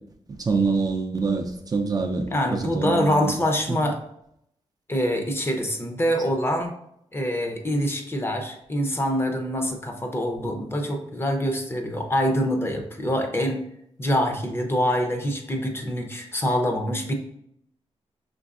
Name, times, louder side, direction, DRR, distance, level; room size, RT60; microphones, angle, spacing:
voice 1, 0.5-2.2 2.5-3.3 3.7-3.8, right 4 dB, 35° right, 3 dB, 0.4 m, -25 dB
voice 2, 2.3-4.0 4.9-6.8 7.1-13.7 14.0-17.1, equal, 20° left, 3 dB, 0.6 m, -25 dB
5.1 x 3.3 x 2.4 m, 0.73 s
wide cardioid pair, 125°, 11 cm